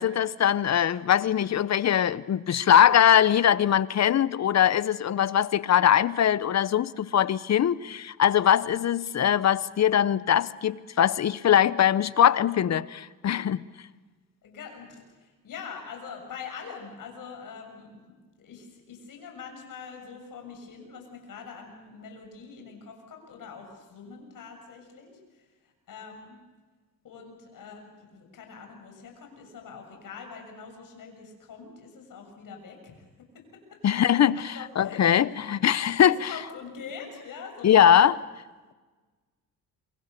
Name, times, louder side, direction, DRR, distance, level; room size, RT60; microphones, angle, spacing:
voice 1, 0.0-13.6 33.8-34.4 34.8-36.3 37.6-38.2, left 10 dB, 50° left, 0.9 m, -21 dB
voice 2, 14.4-18.1 18.4-26.4 27.0-33.1 34.3-35.1 35.5-35.6 36.1-38.1, left 6 dB, 65° left, 7.4 m, -44 dB
27.5 x 25.0 x 6.8 m
cardioid pair, 95°, 35 cm